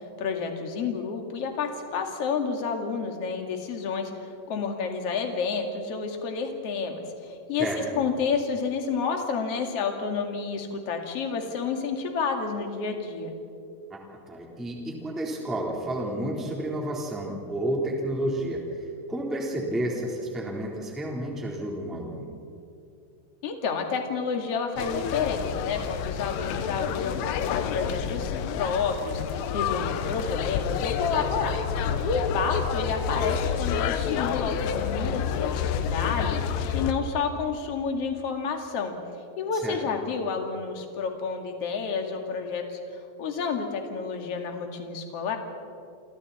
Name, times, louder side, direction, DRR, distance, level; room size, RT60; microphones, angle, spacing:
voice 1, 0.2-7.7 8.0-13.3 23.4-31.5 32.0-36.4 36.7-39.0 39.4-42.8 43.2-45.4, left 5 dB, 50° left, 3 dB, 2.0 m, -30 dB
voice 2, 7.6-8.0 13.9-14.0 14.3-22.3 39.5-39.8, right 1 dB, ahead, -2 dB, 2.5 m, -31 dB
sound 1, 24.8-36.9, left 7 dB, 85° left, 3.6 m, -29 dB
28.0 x 27.5 x 4.3 m, 2.5 s
omnidirectional pair, 5.7 m